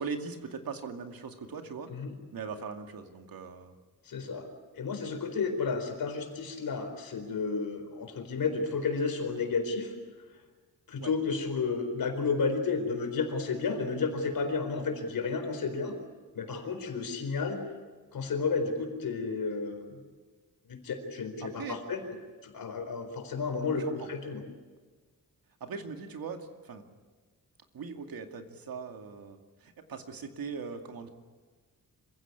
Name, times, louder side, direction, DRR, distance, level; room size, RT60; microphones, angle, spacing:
voice 1, 0.0-1.9 2.3-3.7 11.0-11.1 21.4-21.8 23.7-24.1 25.6-26.8 27.7-31.1, right 5 dB, 80° right, 5 dB, 2.4 m, -40 dB
voice 2, 4.0-4.5 4.7-9.9 10.9-15.9 16.3-17.6 18.1-20.0 20.7-22.0 22.4-23.8 24.1-24.4, left 4 dB, 75° left, 5 dB, 4.5 m, -32 dB
26.0 x 16.0 x 9.8 m, 1.4 s
wide cardioid pair, 160°, 35 cm